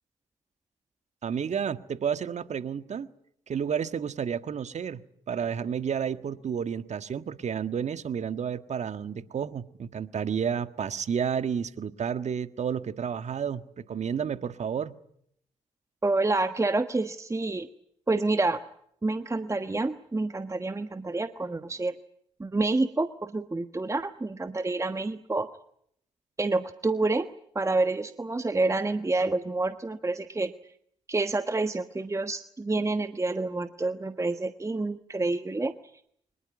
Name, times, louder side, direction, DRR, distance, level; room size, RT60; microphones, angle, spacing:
voice 1, 1.2-3.1 3.5-5.0 5.3-14.9, right 7 dB, 50° right, 11 dB, 1.6 m, -31 dB
voice 2, 16.0-17.7 18.1-18.6 19.0-21.9 22.4-25.5 26.4-27.3 27.5-30.5 31.1-35.7, right 2 dB, 20° right, 10 dB, 1.3 m, -28 dB
24.5 x 20.5 x 9.8 m, 0.70 s
hypercardioid pair, 45°, 15 cm